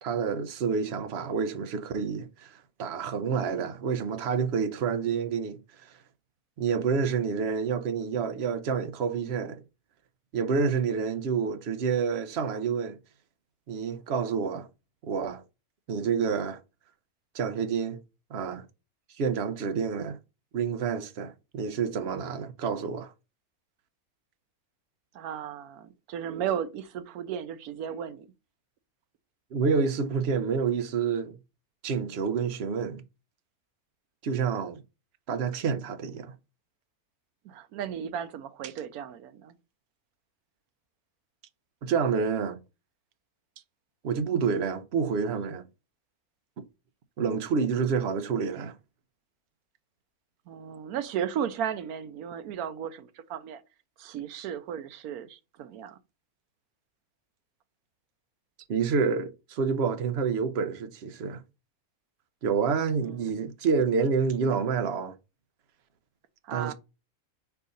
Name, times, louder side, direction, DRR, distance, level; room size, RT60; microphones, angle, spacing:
voice 1, 0.0-5.9 6.6-9.6 10.3-13.0 13.7-14.7 15.0-15.4 15.9-16.6 17.3-18.0 18.3-18.6 19.2-20.2 20.5-23.1 29.5-31.4 31.8-33.0 34.2-34.8 35.3-36.3 41.8-42.6 44.0-45.6 46.6-46.7 47.2-48.8 58.7-61.4 62.4-65.1 66.5-66.7, right 5 dB, 55° right, 0.8 m, -28 dB
voice 2, 25.1-28.3 37.4-39.5 50.5-53.6 54.0-56.0 63.0-63.3 66.4-66.7, right 9 dB, 85° right, 1.1 m, -35 dB
4.6 x 4.0 x 5.1 m
omnidirectional pair, 1.5 m